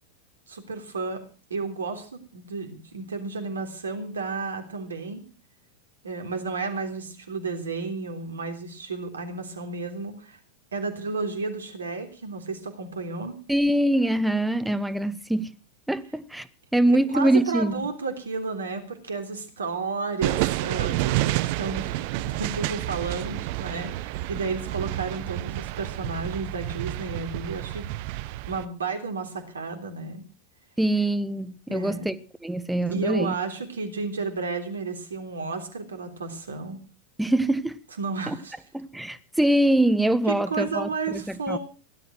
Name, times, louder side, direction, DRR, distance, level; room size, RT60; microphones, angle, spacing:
voice 1, 0.5-1.2 1.5-5.2 6.0-10.4 10.7-13.4 17.1-27.9 28.5-30.2 31.7-32.1 32.9-36.8 38.0-38.6 40.3-41.6, right 4 dB, 80° right, 3.4 m, -32 dB
voice 2, 13.5-15.6 15.9-16.5 16.7-17.8 30.8-32.1 32.4-33.3 37.2-37.8 38.3-38.4 38.7-41.6, right 1 dB, 5° right, 1.1 m, -24 dB
sound 1, 20.2-28.7, right 17 dB, 55° right, 0.9 m, -29 dB
17.0 x 11.5 x 6.2 m
hypercardioid pair, 95°, 0 cm